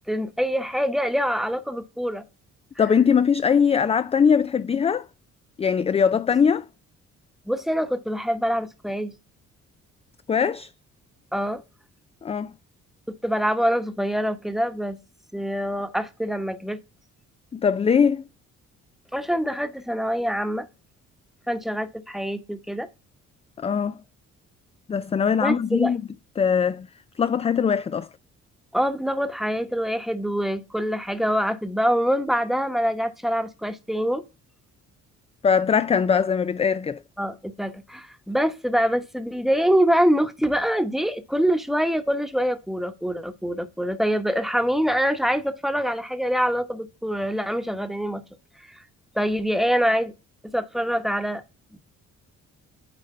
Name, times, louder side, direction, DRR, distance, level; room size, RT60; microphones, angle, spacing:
voice 1, 0.1-2.2 7.5-9.1 11.3-11.6 13.1-15.0 15.3-16.8 19.1-20.7 21.5-22.9 25.4-25.9 28.7-34.2 37.2-48.2 48.8-48.9 49.1-50.1 50.5-51.4, equal, ahead, 1.0 m, -25 dB
voice 2, 2.8-5.1 5.6-6.7 10.3-10.7 12.2-12.5 17.5-18.2 23.6-24.0 24.9-26.0 26.4-26.9 27.2-28.1 35.4-37.0, left 6 dB, 20° left, 0.3 m, -21 dB
9.1 x 3.3 x 4.3 m
cardioid pair, 90°, 30 cm